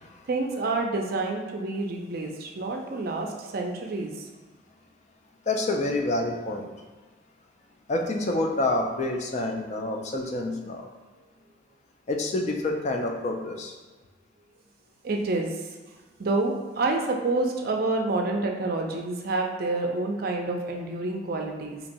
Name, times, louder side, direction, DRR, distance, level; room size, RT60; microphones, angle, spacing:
voice 1, 0.3-4.2 15.0-15.6 16.2-21.8, right 2 dB, 50° right, 2 dB, 0.4 m, -28 dB
voice 2, 5.5-6.7 7.9-10.9 12.1-13.7, left 2 dB, 35° left, 3 dB, 0.3 m, -28 dB
4.2 x 2.8 x 2.6 m, 1.3 s
head